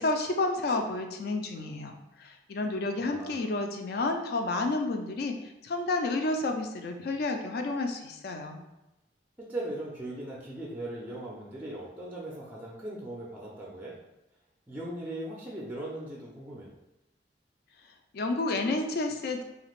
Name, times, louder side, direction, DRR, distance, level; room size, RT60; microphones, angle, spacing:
voice 1, 0.0-8.6 18.1-19.4, left 2 dB, 60° left, 5 dB, 0.4 m, -30 dB
voice 2, 3.0-3.4 9.4-13.9 14.7-16.7, right 1 dB, 10° right, -4 dB, 0.4 m, -39 dB
3.2 x 2.8 x 2.4 m, 0.96 s
head